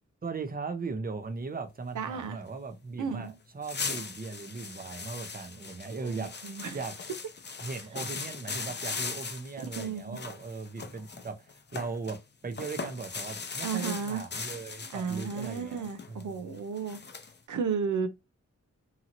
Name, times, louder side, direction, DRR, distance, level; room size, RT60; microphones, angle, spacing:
voice 1, 0.2-6.9 7.6-12.2 12.4-16.5, right 4 dB, 30° right, 0.7 m, -38 dB
voice 2, 1.9-2.4 3.0-3.3 6.0-6.8 9.6-10.2 13.6-14.2 14.9-17.0 17.5-18.1, right 6 dB, 85° right, 0.5 m, -33 dB
sound 1, 3.2-3.3 3.6-12.2 12.5-17.4, left 5 dB, 35° left, 0.5 m, -39 dB
2.8 x 2.8 x 2.5 m
wide cardioid pair, 75°, 29 cm